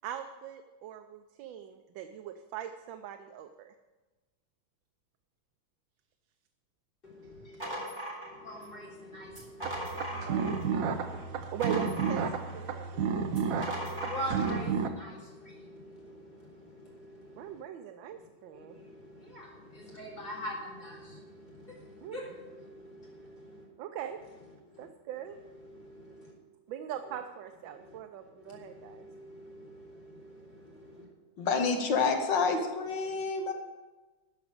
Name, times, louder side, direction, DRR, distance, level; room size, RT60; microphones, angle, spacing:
voice 1, 0.0-3.7 7.7-7.9 11.5-13.0 17.4-18.8 22.0-22.3 23.8-24.2 24.8-25.4 26.7-29.1, right 10 dB, 85° right, 1.4 m, -41 dB
voice 2, 7.0-7.8 8.2-11.3 12.9-17.6 18.5-23.6 24.7-24.9 25.6-26.3 27.8-31.0 33.1-33.2, equal, 25° left, 3.5 m, -45 dB
sound 1, 7.3-8.8 9.3-10.7 11.1-12.6 13.3-14.6, equal, 15° right, 3.5 m, -39 dB
sound 2, 9.6-14.9, right 6 dB, 60° right, 1.0 m, -32 dB
voice 3, 31.4-33.5, left 4 dB, 75° left, 1.9 m, -28 dB
13.0 x 5.0 x 8.2 m
omnidirectional pair, 2.0 m